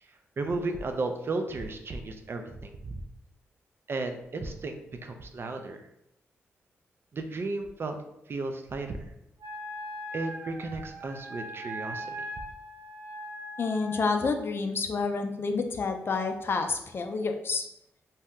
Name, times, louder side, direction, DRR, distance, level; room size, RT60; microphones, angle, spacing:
voice 1, 0.4-3.0 3.9-5.8 7.1-8.0 8.3-9.0 10.1-12.1, right 3 dB, 50° right, 6 dB, 0.4 m, -34 dB
Wind instrument woodwind instrument, 9.4-14.3, equal, 90° right, 0.6 m, -40 dB
voice 2, 13.6-17.6, left 4 dB, 50° left, 6 dB, 0.4 m, -29 dB
2.7 x 2.1 x 3.6 m, 0.82 s
cardioid pair, 55°, 5 cm